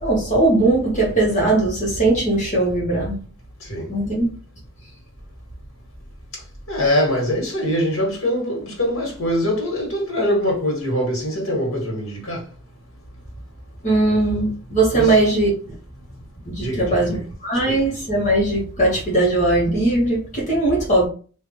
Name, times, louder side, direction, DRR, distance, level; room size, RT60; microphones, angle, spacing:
voice 1, 0.0-3.2 3.9-4.3 13.8-15.5 16.5-17.2 17.4-21.1, right 2 dB, 35° left, 1.7 m, -19 dB
voice 2, 6.7-12.4 14.9-15.2 16.6-17.2 17.7-17.8, equal, 80° left, 2.1 m, -23 dB
3.5 x 3.1 x 3.1 m
head